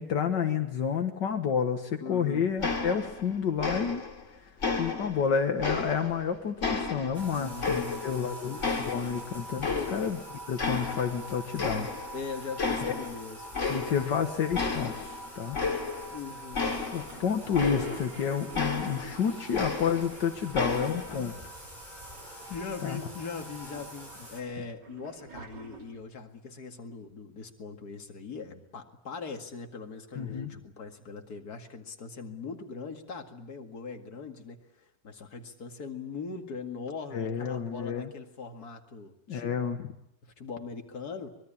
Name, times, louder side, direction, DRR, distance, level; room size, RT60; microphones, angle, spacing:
voice 1, 0.0-4.0 4.8-10.2 10.5-11.9 12.8-13.0 13.7-15.6 16.9-21.3 22.8-23.0 30.2-30.5 37.1-38.1 39.3-39.9, left 7 dB, 85° left, 5 dB, 2.1 m, -30 dB
voice 2, 2.0-2.5 7.4-8.6 9.7-10.0 12.1-13.5 16.1-16.7 21.1-21.4 22.5-39.5 40.2-41.3, left 5 dB, 60° left, 4 dB, 2.6 m, -41 dB
sound 1, 2.6-3.3 3.6-4.2 4.6-6.2 6.6-8.3 8.6-10.2 10.6-11.3 11.6-12.2 12.6-13.1 13.5-14.2 14.5-18.2 18.5-20.2 20.5-21.2, left 4 dB, 45° left, 2.8 m, -32 dB
Bathtub (filling or washing), 7.1-24.4, right 1 dB, 25° right, 7.1 m, -45 dB
Toilet flush, 17.0-21.4 21.7-21.8 22.0-22.8 23.3-26.2, right 5 dB, 80° right, 3.8 m, -48 dB
25.0 x 21.5 x 8.7 m, 0.77 s
omnidirectional pair, 1.9 m